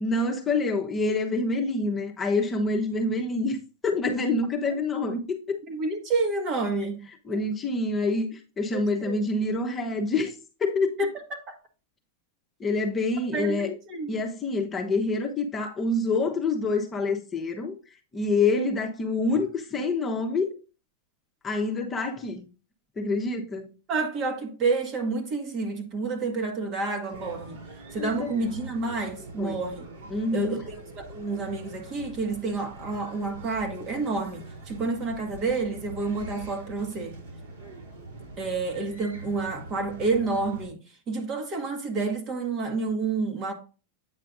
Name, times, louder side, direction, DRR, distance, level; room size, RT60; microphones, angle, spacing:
voice 1, 0.0-3.6 3.8-5.6 7.3-11.0 12.6-13.7 14.1-17.8 18.1-20.5 21.4-22.4 23.0-23.7 28.0-28.3 29.4-29.6 30.1-30.6, left 3 dB, 20° left, 1.0 m, -27 dB
voice 2, 5.7-7.5 8.7-9.2 11.0-11.6 13.3-14.1 23.9-27.6 27.9-29.9 30.3-37.2 38.4-40.8 41.1-43.5, right 3 dB, 35° right, 1.7 m, -29 dB
sound 1, 27.1-40.7, right 2 dB, 65° right, 3.5 m, -43 dB
8.7 x 5.6 x 2.6 m
hypercardioid pair, 120°, 0 cm